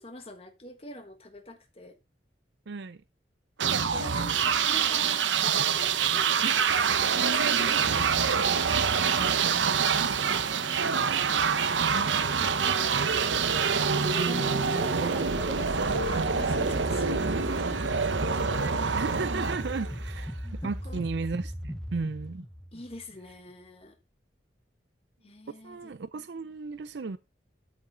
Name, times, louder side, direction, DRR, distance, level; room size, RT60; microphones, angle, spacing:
voice 1, 0.0-1.9 3.6-6.7 7.0-8.8 10.1-11.1 11.7-13.5 14.0-14.9 15.6-18.6 20.4-21.0 22.7-23.9 25.2-25.8, left 1 dB, 30° left, 1.3 m, -46 dB
voice 2, 2.7-3.0 3.7-4.3 6.4-6.9 9.2-10.2 18.9-22.5 25.6-27.2, right 4 dB, 70° right, 0.5 m, -36 dB
sound 1, 3.6-20.3, right 6 dB, 90° right, 0.9 m, -26 dB
sound 2, 14.0-23.4, equal, 5° left, 0.8 m, -38 dB
12.5 x 5.7 x 3.9 m
head